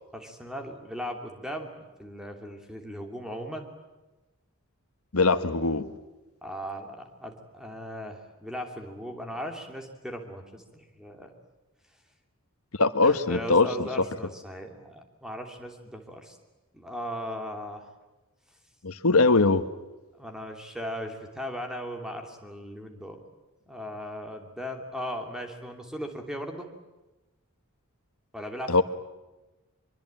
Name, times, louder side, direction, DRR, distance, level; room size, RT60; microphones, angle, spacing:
voice 1, 0.1-1.7 2.0-3.7 6.4-10.6 10.9-11.3 13.0-16.4 16.7-17.9 20.2-23.2 23.6-26.7 28.3-28.8, equal, 5° right, 4 dB, 2.8 m, -38 dB
voice 2, 5.1-5.9 12.8-13.7 18.8-19.7 28.7-28.8, left 3 dB, 75° left, 11 dB, 1.4 m, -21 dB
24.5 x 23.5 x 8.9 m, 1.1 s
head